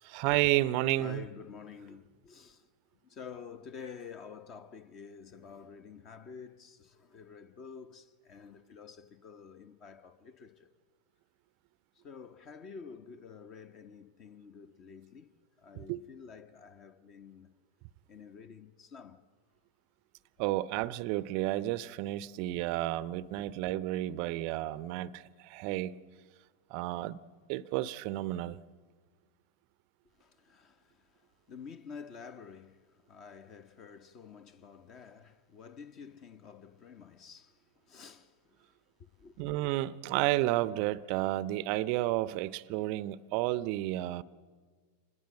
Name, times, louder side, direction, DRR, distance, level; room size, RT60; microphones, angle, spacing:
voice 1, 0.1-1.2 15.9-16.0 20.4-26.0 26.7-27.2 27.5-28.6 39.4-44.2, right 16 dB, 45° right, 0.6 m, -31 dB
voice 2, 1.0-2.7 3.0-10.7 11.9-17.5 18.1-19.2 23.4-23.5 30.1-39.5, left 6 dB, 35° left, 1.1 m, -50 dB
26.0 x 20.5 x 7.8 m
figure-of-eight pair, 90°, 0 cm